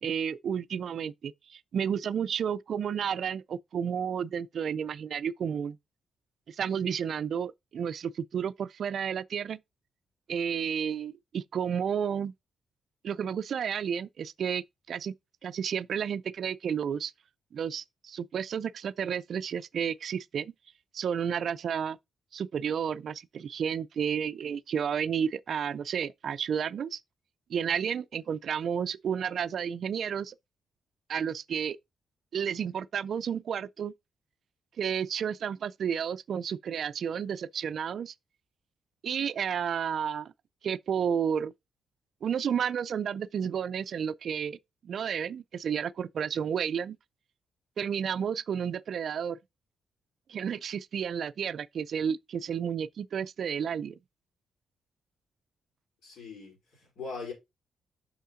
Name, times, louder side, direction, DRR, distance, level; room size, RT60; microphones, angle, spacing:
voice 1, 0.0-5.8 6.5-9.6 10.3-12.3 13.0-15.1 15.4-17.1 17.5-20.5 20.9-22.0 22.3-27.0 27.5-30.3 31.1-31.8 32.3-33.9 34.8-38.1 39.0-40.3 40.6-41.5 42.2-44.6 44.8-47.0 47.8-49.4 50.3-54.0, right 7 dB, 60° right, 0.3 m, -31 dB
voice 2, 56.0-57.3, left 4 dB, 70° left, 4.3 m, -41 dB
6.3 x 5.6 x 3.7 m
cardioid pair, 125°, 0 cm